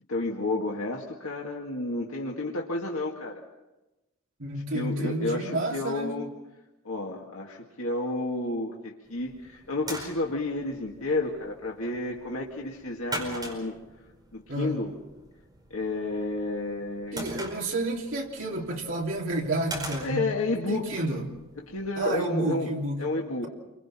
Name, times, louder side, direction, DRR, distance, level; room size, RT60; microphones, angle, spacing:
voice 1, 0.1-3.4 4.7-6.3 6.8-13.7 14.3-14.9 15.7-17.3 20.0-21.0 21.6-23.5, left 2 dB, 80° left, -2 dB, 2.1 m, -31 dB
voice 2, 4.4-6.2 14.5-14.8 17.1-20.3 20.7-21.3 22.0-23.0, right 1 dB, 60° right, -1 dB, 3.2 m, -30 dB
sound 1, 9.1-22.1, right 1 dB, 20° right, 4.9 m, -43 dB
29.0 x 24.0 x 4.4 m, 1.0 s
head